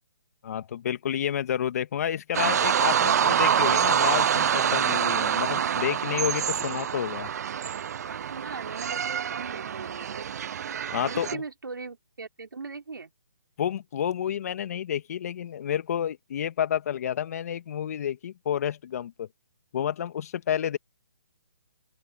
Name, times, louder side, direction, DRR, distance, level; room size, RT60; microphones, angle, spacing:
voice 1, 0.4-7.3 10.9-11.4 13.6-19.3 19.7-20.8, left 9 dB, 50° left, 2.0 m, -30 dB
sound 1, 2.3-11.3, right 8 dB, 50° right, 0.8 m, -26 dB
voice 2, 7.9-10.3 11.0-13.1, right 4 dB, 80° right, 5.1 m, -40 dB
open air
hypercardioid pair, 145°, 11 cm